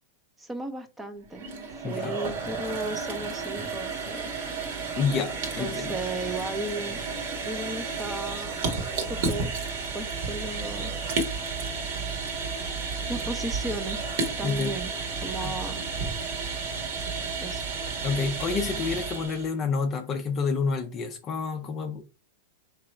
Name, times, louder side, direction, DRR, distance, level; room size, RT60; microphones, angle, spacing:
voice 1, 0.4-1.5 1.8-4.3 5.6-7.1 7.4-9.5 9.9-10.9 13.1-14.0 14.4-14.9 15.2-15.8 17.4-17.6, right 1 dB, 10° right, 0.7 m, -35 dB
sound 1, 1.2-19.5, right 4 dB, 60° right, 1.5 m, -32 dB
voice 2, 1.8-2.2 5.0-6.0 14.4-14.7 15.3-15.6 18.0-22.0, left 5 dB, 25° left, 0.5 m, -29 dB
3.6 x 3.1 x 4.4 m
supercardioid pair, 145°, 0 cm